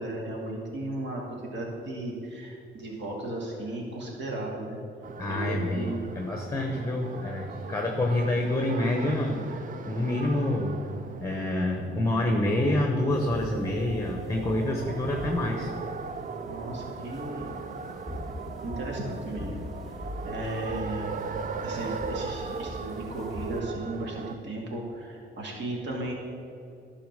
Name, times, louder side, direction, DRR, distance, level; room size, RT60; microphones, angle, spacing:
voice 1, 0.0-4.8 5.2-6.0 16.4-17.5 18.6-19.6 20.3-21.2 21.6-24.2 24.4-26.1, right 1 dB, 65° right, -2 dB, 2.2 m, -35 dB
sound 1, 5.0-24.4, right 5 dB, 40° right, 0.5 m, -38 dB
voice 2, 5.2-9.6 9.9-10.8 11.2-15.7, left 1 dB, 15° left, 1 dB, 1.0 m, -27 dB
sound 2, 13.1-23.6, left 1 dB, ahead, 1.8 m, -42 dB
11.5 x 4.3 x 6.6 m, 2.6 s
cardioid pair, 90°, 20 cm